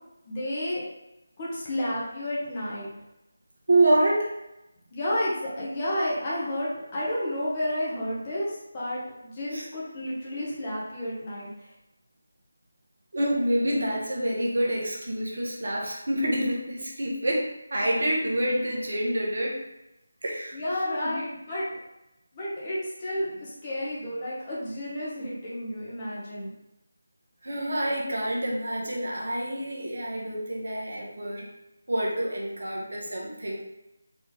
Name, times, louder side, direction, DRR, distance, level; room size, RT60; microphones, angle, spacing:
voice 1, 0.2-0.8 1.4-2.9 4.9-11.7 20.5-21.7 22.3-26.5, left 1 dB, 25° left, -7 dB, 1.4 m, -31 dB
voice 2, 3.7-4.3 9.5-9.6 13.1-17.4 17.7-19.6 20.2-20.6 21.0-21.1 27.4-31.5 31.9-33.6, right 1 dB, 60° right, -2 dB, 1.2 m, -27 dB
4.2 x 3.3 x 3.8 m, 0.91 s
figure-of-eight pair, 160°, 0 cm